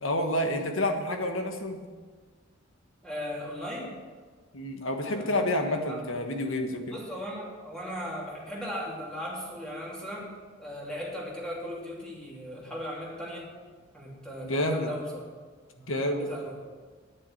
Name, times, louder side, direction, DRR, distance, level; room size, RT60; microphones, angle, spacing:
voice 1, 0.0-1.8 4.5-6.9 14.4-14.9 15.9-16.3, left 1 dB, 80° left, 4 dB, 1.5 m, -29 dB
voice 2, 3.0-4.0 5.1-6.0 6.9-10.3 10.6-13.5 13.9-15.2 15.7-16.6, equal, 5° left, -5 dB, 2.9 m, -38 dB
9.8 x 7.5 x 8.0 m, 1.5 s
head